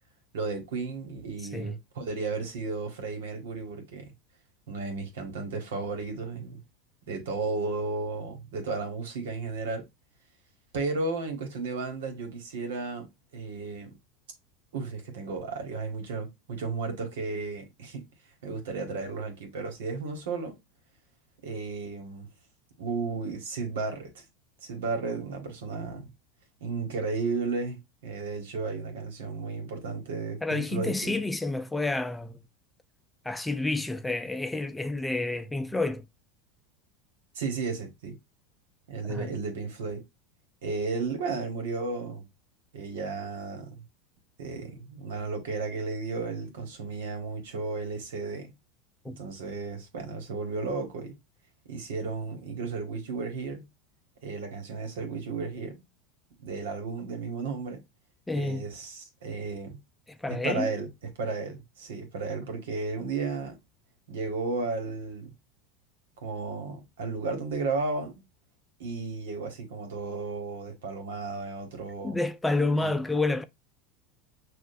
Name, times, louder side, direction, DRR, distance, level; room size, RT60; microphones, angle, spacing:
voice 1, 0.3-4.1 4.7-6.6 7.1-9.8 10.7-13.1 13.3-13.9 14.7-18.0 18.4-20.5 21.4-22.3 22.8-24.2 24.6-26.1 26.6-31.1 37.3-38.2 38.9-40.0 40.6-42.2 42.7-43.7 44.4-48.5 49.1-51.1 51.7-53.6 54.2-55.8 56.4-57.8 58.3-59.8 60.3-60.9 61.2-63.6 64.1-65.3 66.2-68.2 68.8-72.2 72.8-72.9, right 4 dB, 85° right, 1.5 m, -34 dB
voice 2, 1.4-1.7 30.4-32.4 33.2-36.1 39.1-39.3 49.0-49.2 58.3-58.6 60.1-60.7 72.0-73.4, left 2 dB, 10° left, 0.5 m, -29 dB
6.2 x 2.5 x 2.6 m
hypercardioid pair, 105°, 0 cm